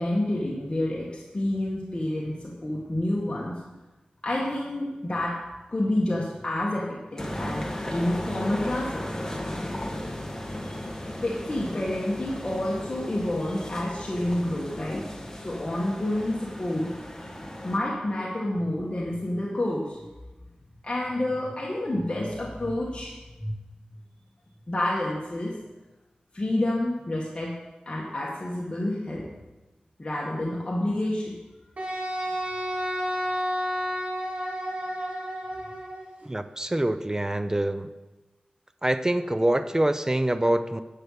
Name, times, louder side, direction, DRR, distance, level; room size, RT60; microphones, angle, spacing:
voice 1, 0.0-3.6 4.2-5.4 5.7-9.1 10.6-10.9 11.2-15.1 15.4-17.0 17.6-20.0 20.8-23.5 24.7-25.6 26.3-27.6 27.9-29.3 30.0-31.4 32.2-32.3, left 1 dB, 35° left, -4 dB, 1.8 m, -29 dB
sound 1, 7.2-17.8, left 1 dB, 20° left, 1.4 m, -36 dB
Wind instrument woodwind instrument, 31.8-36.0, equal, 55° right, 2.7 m, -30 dB
voice 2, 36.2-37.9 38.8-40.8, right 1 dB, 20° right, 11 dB, 0.6 m, -25 dB
11.0 x 6.4 x 5.8 m, 1.1 s
wide cardioid pair, 70°, 3 cm